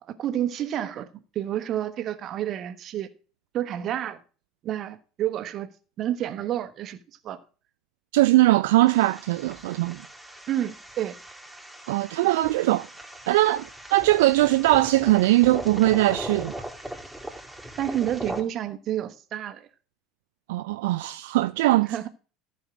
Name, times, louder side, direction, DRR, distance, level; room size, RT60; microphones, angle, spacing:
voice 1, 0.2-1.1 1.3-3.1 3.5-4.2 4.6-5.7 6.0-7.0 7.2-7.4 10.5-11.2 17.8-19.7 21.9-22.1, right 11 dB, 45° right, 1.2 m, -29 dB
voice 2, 8.1-10.0 11.9-12.9 13.3-16.5 20.5-22.1, right 17 dB, 70° right, 0.4 m, -21 dB
sound 1, 8.9-18.4, right 1 dB, 5° right, 2.5 m, -39 dB
14.0 x 5.6 x 4.8 m
figure-of-eight pair, 70°, 0 cm